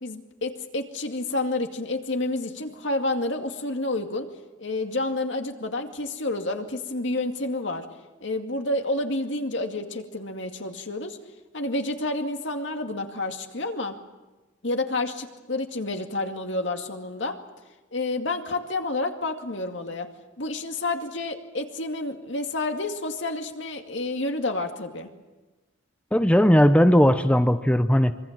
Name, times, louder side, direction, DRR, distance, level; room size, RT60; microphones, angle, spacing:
voice 1, 0.0-4.3 4.6-7.8 8.2-11.2 11.5-13.9 14.6-17.4 17.9-20.1 20.4-25.1, left 2 dB, 70° left, 4 dB, 2.3 m, -29 dB
voice 2, 26.1-28.2, equal, 5° left, 9 dB, 0.7 m, -18 dB
25.5 x 23.5 x 7.4 m, 1.2 s
head